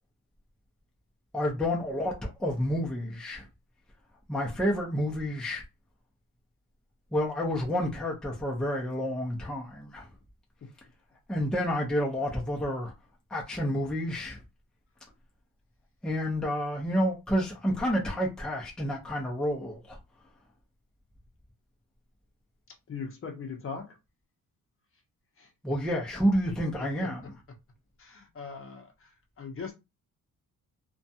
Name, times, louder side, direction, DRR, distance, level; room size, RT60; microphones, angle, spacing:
voice 1, 1.3-3.4 4.3-5.6 7.1-10.0 11.3-12.9 13.3-14.4 16.0-20.0 25.6-27.2, equal, ahead, 0.6 m, -29 dB
voice 2, 22.9-24.0 25.4-25.5 26.8-27.1 28.0-29.7, left 5 dB, 40° left, 0.7 m, -40 dB
2.5 x 2.3 x 2.7 m
cardioid pair, 150°, 34 cm